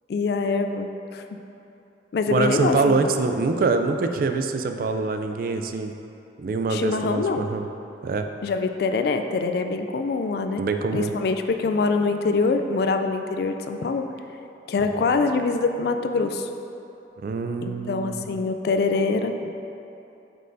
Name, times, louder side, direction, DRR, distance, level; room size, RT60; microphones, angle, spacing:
voice 1, 0.1-1.2 2.1-3.0 6.7-7.5 8.4-10.6 10.9-14.0 14.7-16.5 17.6-19.6, left 4 dB, 55° left, 7 dB, 0.3 m, -24 dB
voice 2, 2.3-5.9 6.4-7.7 8.0-8.3 10.6-11.1 15.0-15.1 17.2-18.2, right 3 dB, 45° right, 6 dB, 0.3 m, -24 dB
7.6 x 5.4 x 2.6 m, 2.8 s
head